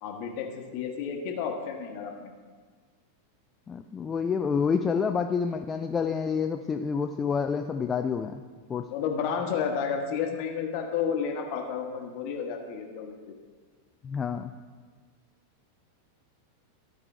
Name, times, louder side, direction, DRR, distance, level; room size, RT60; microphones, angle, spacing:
voice 1, 0.0-2.3 8.9-13.3, left 6 dB, 45° left, 3 dB, 1.1 m, -31 dB
voice 2, 3.7-8.4 8.7-8.9 14.0-14.5, left 6 dB, 20° left, 6 dB, 0.3 m, -28 dB
13.0 x 4.8 x 4.7 m, 1.5 s
figure-of-eight pair, 90°, 0 cm